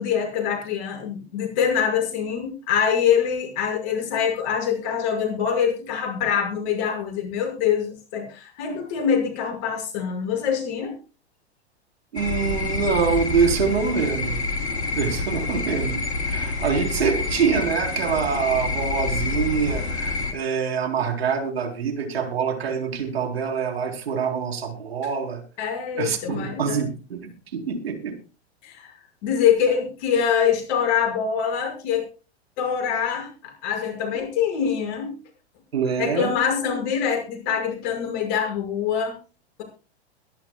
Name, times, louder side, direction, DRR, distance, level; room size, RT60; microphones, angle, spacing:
voice 1, 0.0-11.0 25.6-26.8 28.6-28.9 29.2-32.1 32.6-35.2 36.0-39.1, left 7 dB, 45° left, 5 dB, 5.9 m, -24 dB
voice 2, 12.1-14.4 14.9-25.4 25.9-28.1 35.7-36.3, right 6 dB, 65° right, 4 dB, 3.8 m, -25 dB
sound 1, 12.2-20.3, left 3 dB, 75° left, 3.4 m, -27 dB
22.5 x 11.5 x 2.3 m, 0.34 s
figure-of-eight pair, 100°, 33 cm